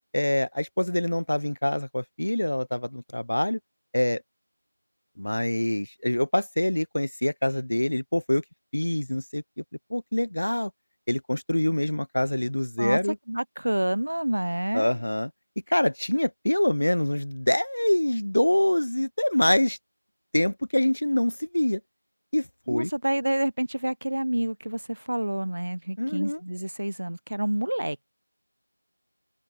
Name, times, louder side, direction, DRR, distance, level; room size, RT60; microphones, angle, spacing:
voice 1, 0.1-3.6 3.9-4.2 5.2-8.4 8.7-9.4 9.9-10.7 11.1-13.2 14.7-15.3 15.7-19.8 20.3-21.8 22.3-22.9 26.0-26.4, left 1 dB, 60° left, 0.9 m, -25 dB
voice 2, 13.3-15.0 22.7-28.1, right 1 dB, 60° right, 0.7 m, -28 dB
open air
figure-of-eight pair, 180°, 0 cm